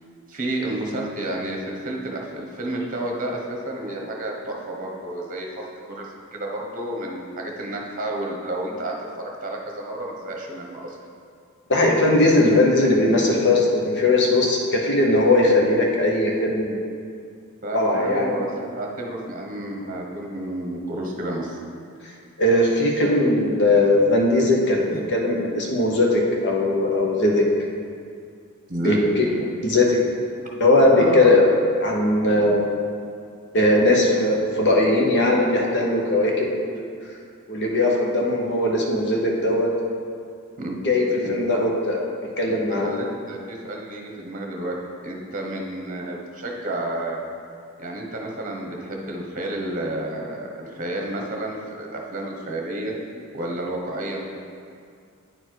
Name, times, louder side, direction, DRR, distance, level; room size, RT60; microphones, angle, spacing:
voice 1, 0.3-5.5 5.9-11.0 17.6-21.6 24.9-25.1 28.7-29.0 29.4-29.5 31.0-31.3 40.6-40.8 41.2-41.3 42.5-42.6 42.8-44.8 45.0-47.2 47.8-52.9 53.3-54.2, right 1 dB, 40° right, 0 dB, 1.2 m, -31 dB
voice 2, 11.7-16.8 17.7-18.4 22.4-27.5 28.8-29.3 29.6-29.8 30.5-31.5 31.8-32.7 33.5-36.8 37.5-39.7 40.8-42.0 42.4-43.0, left 2 dB, 55° left, -1 dB, 1.1 m, -19 dB
9.3 x 4.5 x 4.6 m, 2.3 s
head